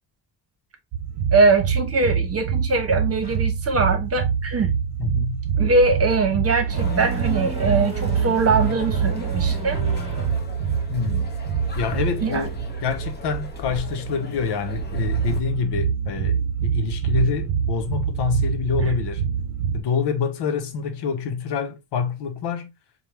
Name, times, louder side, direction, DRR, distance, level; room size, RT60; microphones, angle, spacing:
sound 1, 0.9-19.8, right 7 dB, 80° right, 0.6 m, -25 dB
voice 1, 1.3-4.7 5.6-9.8 12.2-12.5 18.8-18.9, right 3 dB, 35° right, 1.0 m, -22 dB
sound 2, 3.2-3.4 5.3-10.5, right 1 dB, 15° right, 1.4 m, -35 dB
voice 2, 5.0-5.4 10.9-11.3 11.8-19.2 19.7-22.7, left 6 dB, 75° left, 0.9 m, -27 dB
sound 3, 6.7-15.4, left 3 dB, 25° left, 0.8 m, -38 dB
4.6 x 2.3 x 3.2 m
cardioid pair, 135°, 41 cm